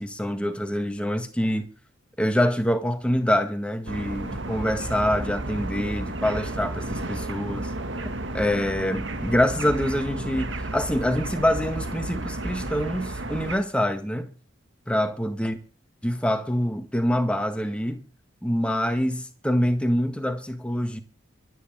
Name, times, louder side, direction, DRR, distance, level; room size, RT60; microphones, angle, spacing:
voice 1, 0.0-1.7 2.2-7.7 8.0-14.3 14.9-15.6 16.0-18.0 18.4-21.0, equal, 5° left, 1.8 m, -25 dB
sound 1, 3.9-13.6, right 2 dB, 60° right, 2.1 m, -32 dB
24.5 x 9.6 x 3.8 m
head